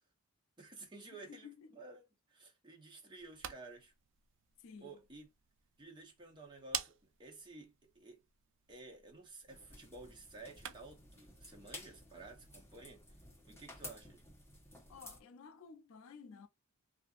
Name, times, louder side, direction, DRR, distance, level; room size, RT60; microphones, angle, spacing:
voice 1, 0.6-3.9 4.8-5.3 5.8-8.2 8.7-13.1 13.4-14.2, right 3 dB, 20° right, 0.7 m, -53 dB
voice 2, 1.1-1.7 4.6-5.0 14.9-16.5, left 6 dB, 60° left, 0.4 m, -54 dB
sound 1, 3.1-11.1, right 10 dB, 55° right, 0.4 m, -49 dB
sound 2, 9.5-15.2, left 1 dB, 10° left, 1.1 m, -54 dB
2.7 x 2.5 x 2.3 m
head